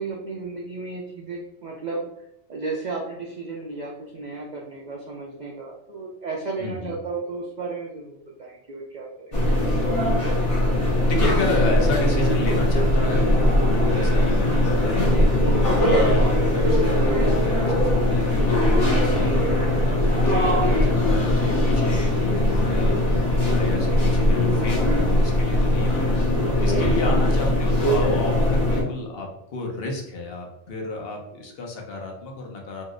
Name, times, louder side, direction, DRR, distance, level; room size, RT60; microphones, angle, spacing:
voice 1, 0.0-2.1 2.5-9.1 26.8-27.2, right 3 dB, 80° right, -2 dB, 0.4 m, -34 dB
voice 2, 6.6-6.9 11.0-15.1 15.8-19.3 19.8-26.2 26.6-32.8, left 2 dB, 55° left, 1 dB, 0.8 m, -31 dB
sound 1, 9.3-28.8, left 1 dB, 30° left, 0.8 m, -20 dB
2.7 x 2.0 x 3.6 m, 0.79 s
omnidirectional pair, 1.3 m